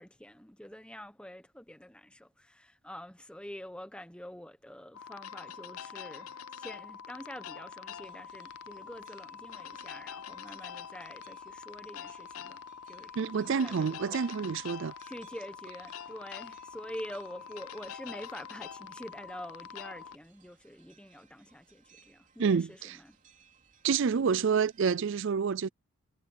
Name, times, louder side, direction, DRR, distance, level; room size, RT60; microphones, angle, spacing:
voice 1, 0.0-12.6 12.9-14.2 15.0-23.2, equal, 5° left, 1.1 m, -46 dB
sound 1, 4.9-20.2, left 7 dB, 85° left, 0.6 m, -45 dB
sound 2, 7.9-25.0, right 6 dB, 35° right, 3.2 m, -64 dB
voice 2, 13.2-15.0 22.4-23.0 23.8-25.7, right 6 dB, 60° right, 0.4 m, -28 dB
head